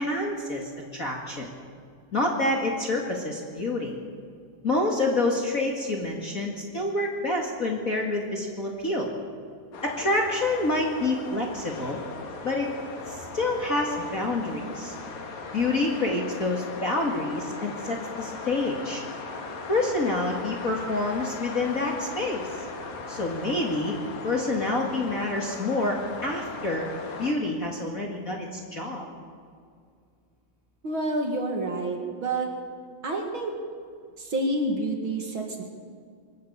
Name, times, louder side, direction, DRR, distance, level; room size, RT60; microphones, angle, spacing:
voice 1, 0.0-1.5 2.1-4.0 4.6-9.1 9.8-12.0 12.4-12.7 13.1-14.9 15.5-19.0 19.7-22.5 23.1-23.9 24.2-26.9 27.2-29.0, left 2 dB, 30° left, 0 dB, 2.0 m, -27 dB
sound 1, 9.7-27.3, left 4 dB, 75° left, 3.3 m, -38 dB
voice 2, 30.8-32.5 33.0-33.5 34.2-35.6, right 2 dB, 45° right, 2 dB, 2.5 m, -28 dB
23.5 x 14.0 x 8.7 m, 2.2 s
omnidirectional pair, 3.3 m